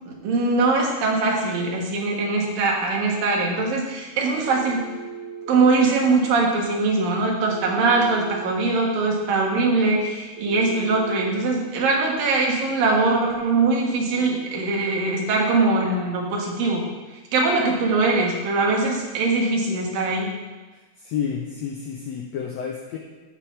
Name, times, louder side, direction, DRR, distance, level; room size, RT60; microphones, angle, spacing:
voice 1, 0.2-4.9 5.5-16.9 17.3-20.3, right 3 dB, 85° right, -1 dB, 3.3 m, -22 dB
Telephone, 4.5-5.5 7.4-8.4 10.4-11.4, right 7 dB, 50° right, 2.6 m, -37 dB
voice 2, 20.7-23.0, left 7 dB, 85° left, 0 dB, 1.5 m, -30 dB
12.0 x 8.4 x 3.3 m, 1.2 s
omnidirectional pair, 3.9 m